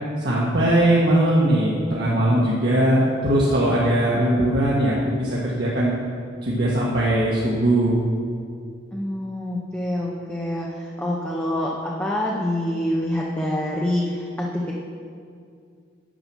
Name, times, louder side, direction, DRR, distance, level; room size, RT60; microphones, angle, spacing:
voice 1, 0.2-6.0 6.4-8.0, right 1 dB, 55° right, -6 dB, 1.5 m, -20 dB
voice 2, 8.9-14.8, left 1 dB, 10° left, -3 dB, 0.8 m, -26 dB
9.1 x 8.6 x 6.2 m, 2.3 s
head